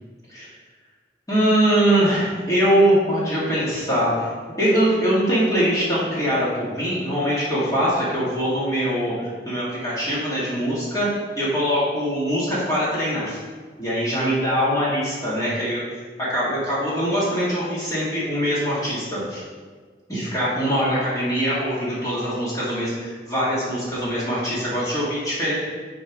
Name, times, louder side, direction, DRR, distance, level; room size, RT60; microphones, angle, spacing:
voice 1, 1.3-4.3 4.6-11.1 11.4-13.4 13.8-15.8 16.2-19.4 20.1-25.5, equal, 20° left, -9 dB, 2.0 m, -22 dB
8.8 x 4.7 x 3.6 m, 1.5 s
head